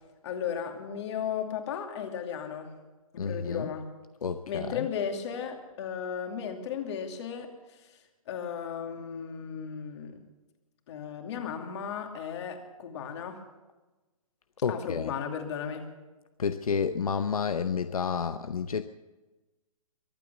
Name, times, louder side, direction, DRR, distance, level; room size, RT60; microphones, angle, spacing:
voice 1, 0.2-2.7 3.1-3.9 4.5-7.5 8.3-10.1 10.9-13.4 14.7-15.8, left 7 dB, 50° left, 4 dB, 2.6 m, -35 dB
voice 2, 3.2-3.7 4.2-4.9 14.6-15.1 16.4-18.8, left 6 dB, 85° left, 11 dB, 0.7 m, -30 dB
23.0 x 8.7 x 7.0 m, 1.2 s
hypercardioid pair, 135°, 18 cm